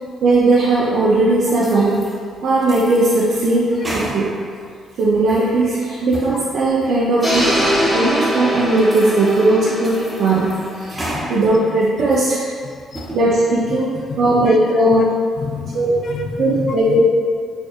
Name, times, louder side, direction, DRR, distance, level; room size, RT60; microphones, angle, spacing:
voice 1, 0.2-2.1 2.4-4.4 5.0-7.6 7.9-12.5 13.1-15.1 15.7-16.0 16.4-17.0, right 2 dB, 75° right, -7 dB, 0.5 m, -17 dB
sound 1, 1.6-2.2 2.6-4.5 4.9-5.5 6.0-6.4 6.8-6.9 7.5-7.6 8.2-8.3 8.8-9.5 9.8-11.3 11.7-12.3 12.8-13.2, right 1 dB, 15° right, 0.8 m, -33 dB
sound 2, 7.2-11.2, equal, 10° left, 1.1 m, -22 dB
voice 2, 11.0-11.3 12.7-13.0 13.7-13.8 14.1-14.6 15.4-17.0, left 5 dB, 60° left, 5 dB, 0.3 m, -30 dB
4.3 x 3.2 x 2.3 m, 2.1 s
cardioid pair, 90°, 0 cm